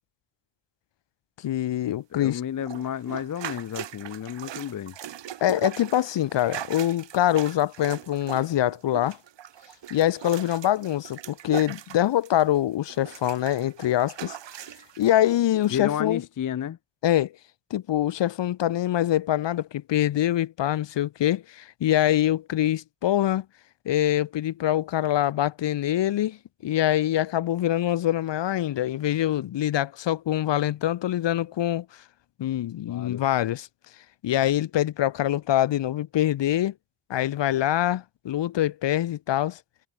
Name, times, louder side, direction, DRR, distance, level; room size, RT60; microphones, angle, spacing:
voice 1, 1.4-2.4 5.4-9.2 9.9-14.4 15.0-16.2 17.0-17.3 17.7-23.4 23.8-26.4 26.6-31.8 32.4-33.7 34.2-36.7 37.1-39.6, left 12 dB, 60° left, 1.4 m, -24 dB
voice 2, 2.2-4.9 15.7-16.8 32.9-33.2, left 9 dB, 40° left, 0.9 m, -31 dB
sound 1, 2.6-12.6 12.9-15.1 15.6-15.7, right 11 dB, 60° right, 3.3 m, -40 dB
cardioid pair, 85°, 48 cm